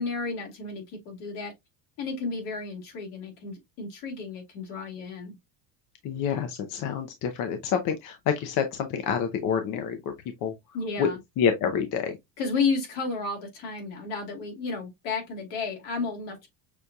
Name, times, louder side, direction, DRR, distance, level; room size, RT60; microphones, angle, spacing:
voice 1, 0.0-1.5 2.0-5.4 10.7-11.2 12.4-16.5, left 4 dB, 80° left, 2.3 m, -32 dB
voice 2, 6.0-10.0 10.4-10.5 11.0-11.1 11.4-12.2, left 7 dB, 50° left, 0.7 m, -27 dB
6.2 x 2.7 x 2.2 m
cardioid pair, 150°, 40 cm